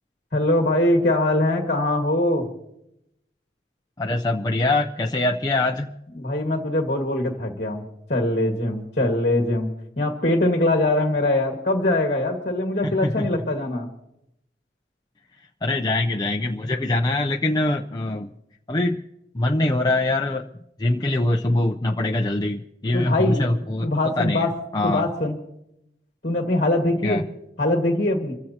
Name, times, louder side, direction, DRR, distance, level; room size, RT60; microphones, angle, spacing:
voice 1, 0.3-2.4 6.2-7.8 8.1-9.7 10.0-13.9 22.9-24.5 24.8-25.4 26.2-27.2 27.6-28.3, left 1 dB, 40° left, 2 dB, 1.8 m, -22 dB
voice 2, 4.0-5.9 12.8-13.3 15.6-18.3 18.7-19.0 19.3-20.5 20.8-23.9 24.2-24.5 24.7-25.0 27.0-27.2, left 2 dB, 20° left, 2 dB, 0.6 m, -23 dB
25.5 x 15.5 x 2.9 m, 0.82 s
head